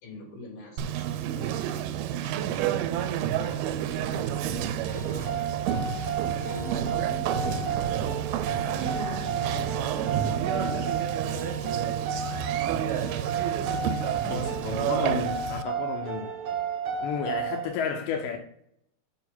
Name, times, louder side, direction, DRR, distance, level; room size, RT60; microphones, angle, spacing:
voice 1, 0.0-2.6 3.0-7.9 8.6-10.5 10.9-13.1 13.4-13.7, left 1 dB, 55° left, 4.1 m, -46 dB
Conversation, 0.8-15.6, right 10 dB, 90° right, 2.4 m, -30 dB
sound 1, 4.9-17.7, right 6 dB, 55° right, 2.1 m, -32 dB
sound 2, 6.5-12.3, equal, 25° right, 3.0 m, -46 dB
voice 2, 8.8-9.7 14.2-16.4 17.0-18.4, left 6 dB, 75° left, 2.1 m, -33 dB
6.9 x 5.4 x 4.3 m
omnidirectional pair, 4.3 m